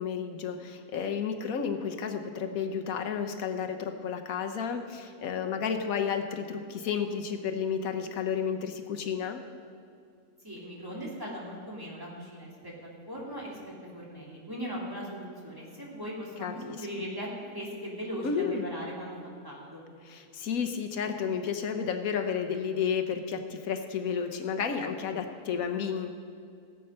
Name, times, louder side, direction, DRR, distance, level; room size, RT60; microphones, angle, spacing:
voice 1, 0.0-9.4 16.4-16.9 18.2-18.7 20.0-26.1, left 7 dB, 85° left, 5 dB, 1.3 m, -32 dB
voice 2, 10.4-19.8, equal, 15° right, -5 dB, 2.6 m, -39 dB
17.5 x 7.9 x 5.4 m, 2.5 s
omnidirectional pair, 1.4 m